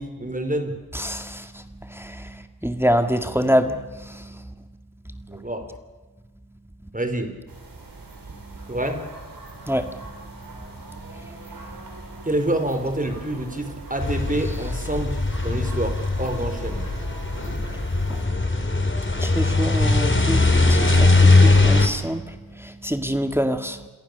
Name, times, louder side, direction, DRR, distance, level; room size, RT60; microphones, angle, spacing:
voice 1, 0.0-0.8 5.3-5.7 6.9-7.3 8.7-9.1 12.2-16.9, right 1 dB, 20° right, 7 dB, 4.8 m, -27 dB
voice 2, 0.9-4.5 5.3-5.4 9.6-10.0 11.1-11.6 18.1-18.5 19.2-23.8, equal, 5° right, 7 dB, 2.0 m, -26 dB
sound 1, 7.5-18.2, right 3 dB, 65° right, 7.7 m, -41 dB
sound 2, 14.0-21.9, left 2 dB, 30° left, 4.4 m, -20 dB
28.5 x 23.5 x 6.8 m, 1.3 s
cardioid pair, 50°, 38 cm